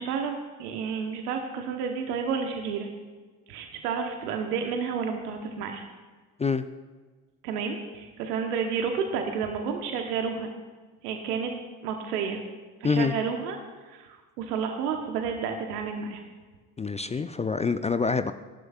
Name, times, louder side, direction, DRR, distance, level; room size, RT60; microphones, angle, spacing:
voice 1, 0.0-2.9 3.5-5.8 7.4-10.5 11.0-11.5 11.8-12.4 12.8-16.2, right 6 dB, 75° right, 4 dB, 1.2 m, -31 dB
voice 2, 12.8-13.1 16.8-18.3, left 4 dB, 15° left, 11 dB, 0.4 m, -26 dB
20.5 x 11.0 x 2.4 m, 1.4 s
hypercardioid pair, 55°, 47 cm